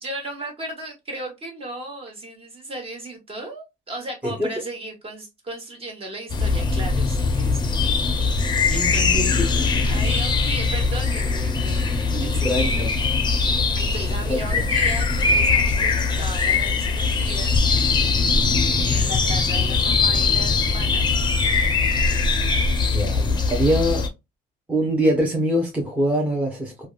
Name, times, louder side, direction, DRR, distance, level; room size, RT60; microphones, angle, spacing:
voice 1, 0.0-8.1 8.4-13.0 13.8-17.6 18.8-21.0, right 2 dB, 35° right, 1.2 m, -36 dB
sound 1, 6.3-24.1, left 4 dB, 25° left, 0.6 m, -21 dB
voice 2, 8.7-9.4 12.1-12.9 14.3-14.6 22.1-22.2 22.9-24.1 24.7-26.9, equal, 10° right, 0.8 m, -24 dB
3.3 x 2.2 x 2.3 m
cardioid pair, 110°, 17 cm